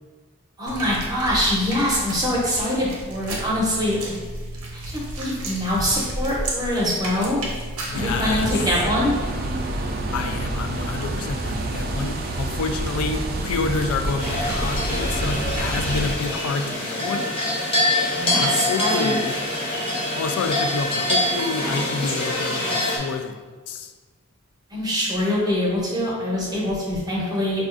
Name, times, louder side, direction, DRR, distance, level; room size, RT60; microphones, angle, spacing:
voice 1, 0.6-4.0 4.9-7.4 7.9-9.1 18.2-19.2 24.7-27.7, left 1 dB, 15° right, -5 dB, 0.7 m, -24 dB
sound 1, 0.7-8.6, right 1 dB, 85° right, 0.7 m, -33 dB
voice 2, 7.8-8.5 10.1-17.3 18.4-19.3 20.1-23.9, left 4 dB, 80° left, 6 dB, 0.3 m, -28 dB
sound 2, 7.9-16.2, right 2 dB, 40° right, 0.3 m, -28 dB
sound 3, 14.2-23.0, left 1 dB, 25° left, 0.6 m, -25 dB
4.8 x 2.3 x 2.5 m, 1.4 s
head